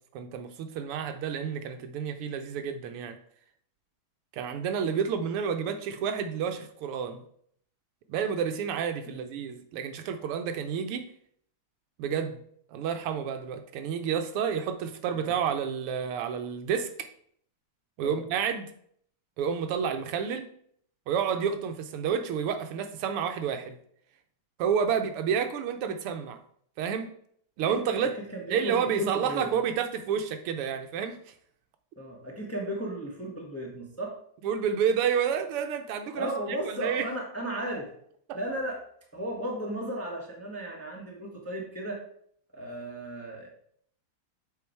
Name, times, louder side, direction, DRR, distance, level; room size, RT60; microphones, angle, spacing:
voice 1, 0.0-3.2 4.3-7.2 8.1-11.1 12.0-12.4 12.7-17.1 18.0-18.7 19.4-20.5 21.1-23.8 24.6-26.4 26.8-27.1 27.6-28.1 28.5-31.1 34.4-36.3 36.7-37.0, right 7 dB, 85° right, 8 dB, 1.7 m, -30 dB
voice 2, 27.7-29.5 32.0-34.2 36.1-37.9 38.3-38.8 39.1-42.0 42.5-43.5, right 1 dB, 10° left, -1 dB, 0.9 m, -35 dB
7.1 x 4.7 x 4.5 m, 0.63 s
omnidirectional pair, 2.4 m